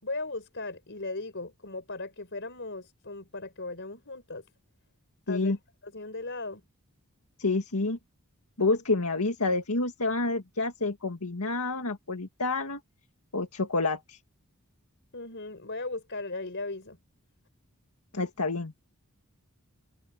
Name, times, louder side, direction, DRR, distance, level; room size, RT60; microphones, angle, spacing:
voice 1, 0.0-4.4 5.3-5.5 5.8-6.6 15.1-17.0, left 2 dB, 55° left, 5.5 m, -37 dB
voice 2, 7.4-8.0 8.6-12.8 13.3-14.2 18.1-18.7, left 3 dB, 85° left, 2.0 m, -28 dB
head